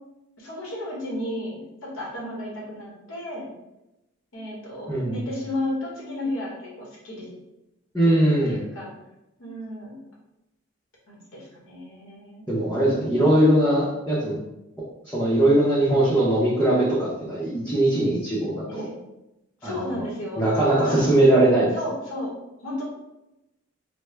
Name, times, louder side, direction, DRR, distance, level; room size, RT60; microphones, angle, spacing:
voice 1, 0.4-3.5 4.3-6.5 6.8-7.3 8.0-8.9 9.4-9.9 11.1-12.4 18.7-18.9 19.6-20.4 20.8-21.1 21.7-22.3 22.6-22.8, left 1 dB, 85° left, -4 dB, 1.1 m, -33 dB
voice 2, 7.9-8.6 12.5-14.4 15.1-18.9 19.6-20.0 20.4-21.7, right 1 dB, 10° left, -9 dB, 0.6 m, -20 dB
3.3 x 2.0 x 3.2 m, 0.93 s
head